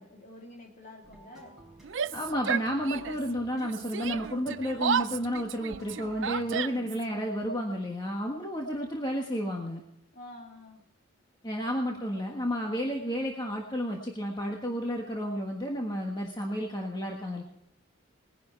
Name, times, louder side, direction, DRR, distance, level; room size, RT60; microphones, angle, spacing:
voice 1, 0.0-1.6 10.1-10.8, left 1 dB, 40° left, 1 dB, 2.8 m, -48 dB
sound 1, 1.0-6.7, right 1 dB, ahead, 4.6 m, -53 dB
Yell, 1.8-3.3 3.6-7.0, right 7 dB, 65° right, 0.5 m, -32 dB
voice 2, 2.1-9.8 11.4-17.4, equal, 20° left, 0 dB, 1.5 m, -31 dB
20.5 x 10.5 x 4.6 m, 0.81 s
head